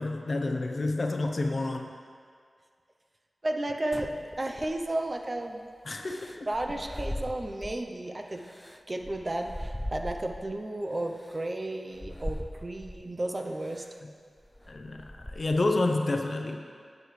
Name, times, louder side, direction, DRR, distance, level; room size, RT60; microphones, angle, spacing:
voice 1, 0.0-1.9 5.9-6.5 14.0-14.1 14.7-16.6, left 2 dB, 55° left, 4 dB, 0.7 m, -29 dB
voice 2, 3.4-5.7 6.5-8.4 8.9-13.9, right 1 dB, 35° right, 4 dB, 0.7 m, -33 dB
sound 1, 3.9-5.1 6.0-7.9 8.3-10.6 11.2-11.3 11.9-13.1 13.6-14.0 14.4-15.7, equal, 10° left, 0.3 m, -40 dB
9.8 x 7.8 x 3.2 m, 2.1 s
cardioid pair, 55°, 0 cm